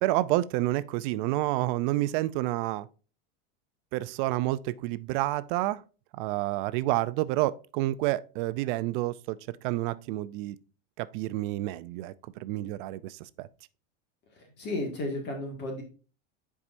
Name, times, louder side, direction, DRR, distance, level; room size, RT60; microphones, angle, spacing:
voice 1, 0.0-2.9 3.9-5.8 6.1-10.6 11.0-13.5, right 17 dB, 55° right, 0.5 m, -29 dB
voice 2, 14.3-15.8, left 2 dB, 35° left, 1.9 m, -34 dB
10.0 x 4.8 x 2.6 m
supercardioid pair, 155°, 30 cm